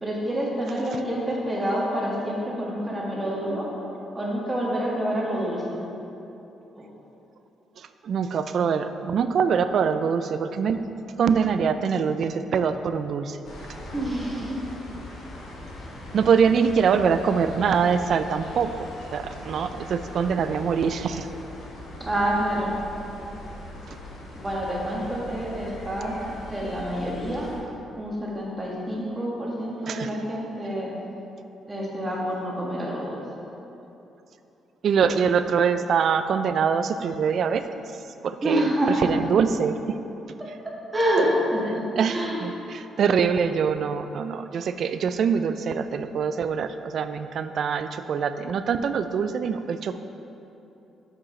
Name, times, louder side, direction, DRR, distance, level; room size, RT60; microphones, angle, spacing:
voice 1, 0.0-3.7 4.1-5.8 6.8-6.9 13.9-14.6 22.0-22.7 24.3-26.1 26.5-27.5 28.0-30.9 31.7-33.2 38.4-39.3 40.9-41.8 42.1-42.4, equal, 20° right, -4 dB, 1.6 m, -27 dB
voice 2, 7.8-10.8 11.2-13.4 16.1-21.3 29.9-30.1 34.8-37.8 38.2-38.7 39.0-39.7 42.0-50.0, right 6 dB, 60° right, 10 dB, 0.3 m, -24 dB
sound 1, 13.4-27.6, left 1 dB, 75° left, 1.2 m, -40 dB
7.7 x 6.0 x 3.2 m, 2.9 s
cardioid pair, 90°, 0 cm